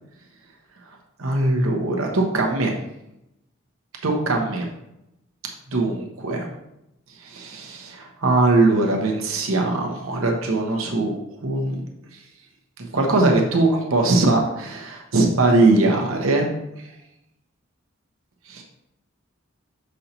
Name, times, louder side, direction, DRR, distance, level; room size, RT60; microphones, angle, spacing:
voice 1, 1.2-2.7 4.0-4.7 5.7-6.5 7.2-11.2 11.4-11.8 12.8-16.5 18.5-18.6, right 2 dB, 70° right, 1 dB, 1.0 m, -21 dB
6.6 x 5.5 x 2.9 m, 0.85 s
head